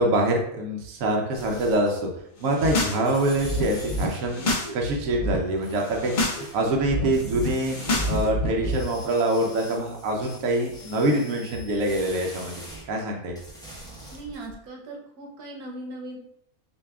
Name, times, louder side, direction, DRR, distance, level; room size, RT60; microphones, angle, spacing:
voice 1, 0.0-2.1 2.4-4.5 4.7-7.8 8.0-12.6 12.9-13.4, right 1 dB, 70° right, 1 dB, 1.1 m, -25 dB
sound 1, 1.3-2.2 2.4-4.3 5.6-6.6 7.1-8.3 8.6-12.8 13.3-14.5, equal, 5° left, 0.6 m, -44 dB
sound 2, 2.4-3.0 3.3-4.7 5.0-5.4 5.8-6.4 6.7-8.8, left 1 dB, 50° left, 0.6 m, -28 dB
voice 2, 14.1-16.2, right 2 dB, 90° right, -1 dB, 1.3 m, -38 dB
6.5 x 2.3 x 2.3 m, 0.74 s
omnidirectional pair, 1.5 m